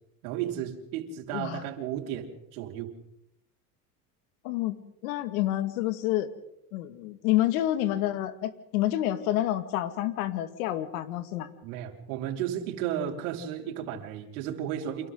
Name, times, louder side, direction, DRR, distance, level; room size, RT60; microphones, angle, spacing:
voice 1, 0.2-2.9 11.6-15.1, right 10 dB, 80° right, 0 dB, 5.3 m, -34 dB
voice 2, 1.3-1.6 4.4-4.8 5.0-6.3 6.7-11.5, left 14 dB, 85° left, 9 dB, 2.2 m, -28 dB
30.0 x 28.0 x 4.0 m, 0.78 s
supercardioid pair, 120°, 41 cm